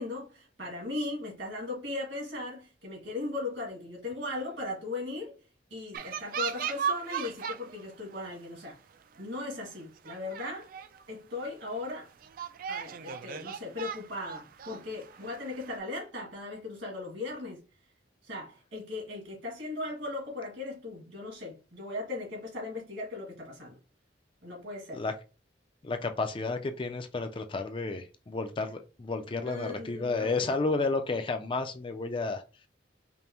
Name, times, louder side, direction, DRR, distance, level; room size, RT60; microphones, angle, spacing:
voice 1, 0.0-5.4 5.7-8.8 9.2-10.7 11.1-12.1 12.7-17.6 18.2-23.8 24.4-25.0 29.2-30.5, left 2 dB, 70° right, 1.9 m, -38 dB
sound 1, 5.9-7.8 8.1-8.5 9.2-9.3 9.7-9.8 10.0-11.0 11.5-11.6 12.2-15.8, right 7 dB, 50° right, 0.3 m, -37 dB
voice 2, 25.8-32.4, left 3 dB, 25° left, 0.4 m, -31 dB
5.3 x 2.1 x 2.9 m
head